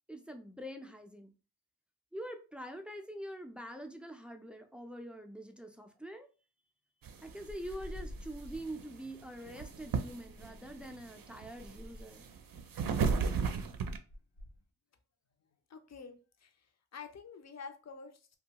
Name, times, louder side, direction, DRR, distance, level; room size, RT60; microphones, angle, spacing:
voice 1, 0.1-1.3 2.1-6.3 7.2-12.3, right 1 dB, 5° right, 5 dB, 0.4 m, -45 dB
sound 1, 7.0-14.0, right 5 dB, 60° right, 0.5 m, -35 dB
sound 2, 7.5-8.7 9.6-10.9 11.5-12.2 12.9-14.6, left 1 dB, 80° left, 0.8 m, -48 dB
voice 2, 15.7-18.4, left 5 dB, 45° left, 6 dB, 0.6 m, -49 dB
2.7 x 2.3 x 2.8 m, 0.35 s
cardioid pair, 55°, 38 cm